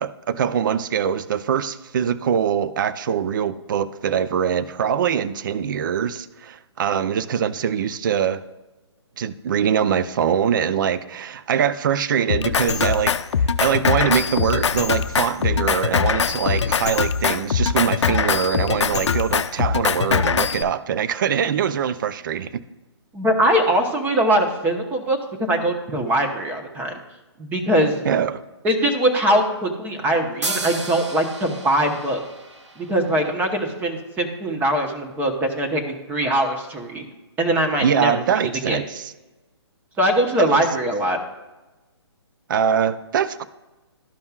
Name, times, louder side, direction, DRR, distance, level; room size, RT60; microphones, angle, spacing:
voice 1, 0.0-8.4 9.2-13.1 13.6-22.6 28.1-28.4 37.8-39.1 40.4-40.6 42.5-43.4, right 8 dB, 45° right, 15 dB, 0.5 m, -23 dB
Drum kit, 12.3-20.6, left 6 dB, 80° left, 0.5 m, -22 dB
voice 2, 23.1-27.0 27.4-28.0 28.6-32.2 32.8-37.0 37.4-38.4 38.7-38.8 40.0-41.2, right 1 dB, 10° right, 3 dB, 1.0 m, -21 dB
sound 1, 30.4-34.0, right 3 dB, 85° right, 1.2 m, -33 dB
13.0 x 5.3 x 2.4 m, 1.1 s
hypercardioid pair, 150°, 15 cm